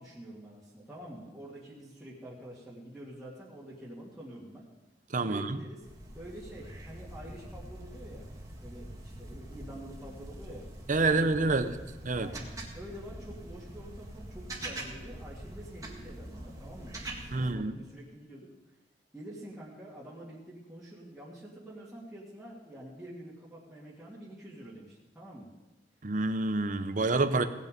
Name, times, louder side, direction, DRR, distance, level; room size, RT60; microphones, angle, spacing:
voice 1, 0.0-4.6 5.2-5.8 6.1-8.3 8.6-10.7 12.1-12.5 12.7-18.5 19.1-25.5 27.3-27.5, right 1 dB, 5° right, -9 dB, 2.4 m, -47 dB
voice 2, 5.1-5.6 10.9-11.7 12.0-12.3 17.3-17.8 26.0-27.4, right 3 dB, 45° right, 10 dB, 0.8 m, -27 dB
sound 1, 5.8-17.5, right 1 dB, 20° right, 1.9 m, -44 dB
17.5 x 8.3 x 5.3 m, 1.0 s
head